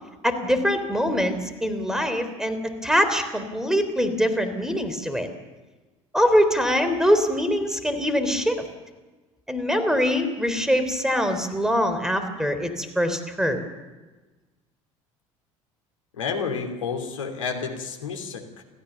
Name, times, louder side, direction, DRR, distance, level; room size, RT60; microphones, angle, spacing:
voice 1, 0.2-5.3 6.1-8.6 9.5-13.6, equal, 5° right, 9 dB, 3.6 m, -23 dB
voice 2, 16.2-18.6, left 5 dB, 75° left, 3 dB, 2.9 m, -30 dB
29.0 x 14.5 x 7.1 m, 1.2 s
figure-of-eight pair, 60°, 17 cm